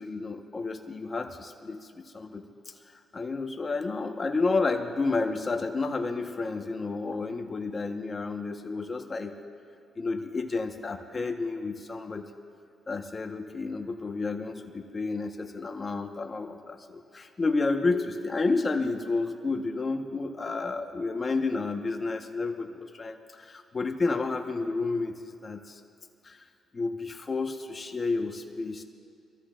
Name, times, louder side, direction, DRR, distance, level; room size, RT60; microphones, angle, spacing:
voice 1, 0.0-2.7 3.1-9.3 10.0-12.3 12.9-25.8 26.2-26.4 26.7-28.8, left 3 dB, 30° left, 4 dB, 1.3 m, -31 dB
26.5 x 14.0 x 2.6 m, 2.4 s
cardioid pair, 90°, 0 cm